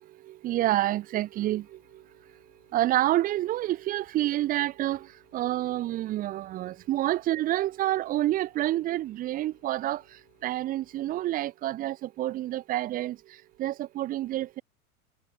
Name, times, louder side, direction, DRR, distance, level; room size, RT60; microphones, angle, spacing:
voice 1, 0.3-1.8 2.7-5.1 5.3-10.0 10.4-13.2 13.6-14.6, right 14 dB, 20° right, 0.5 m, -28 dB
sound 1, 1.3-11.5, left 29 dB, 50° left, 6.9 m, -67 dB
hypercardioid pair, 105°, 42 cm